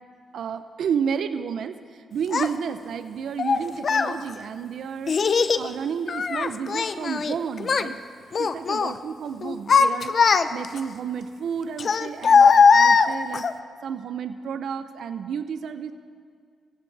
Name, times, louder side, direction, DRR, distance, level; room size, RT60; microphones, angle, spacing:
voice 1, 0.3-8.0 8.4-10.2 10.5-13.5 13.8-15.9, right 7 dB, 70° right, 10 dB, 0.7 m, -31 dB
Child speech kid speaking, 2.3-2.5 3.4-4.1 5.1-5.7 6.1-7.3 7.6-7.9 8.3-8.9 9.4-10.8 11.8-13.5, left 5 dB, 55° left, 0.7 m, -19 dB
26.5 x 16.0 x 3.4 m, 2.1 s
supercardioid pair, 60°, 0 cm